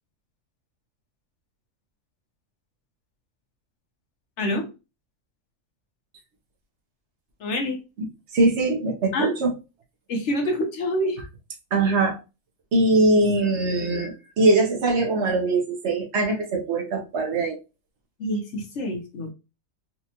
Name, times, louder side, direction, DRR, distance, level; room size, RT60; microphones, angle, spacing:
voice 1, 4.4-4.7 7.4-7.8 9.1-9.3 10.1-11.2 18.2-19.3, left 1 dB, 60° left, 2 dB, 1.3 m, -26 dB
voice 2, 8.3-9.5 11.7-12.2 12.7-17.6, right 2 dB, 60° right, 2 dB, 1.1 m, -22 dB
4.3 x 2.4 x 2.8 m, 0.28 s
omnidirectional pair, 1.4 m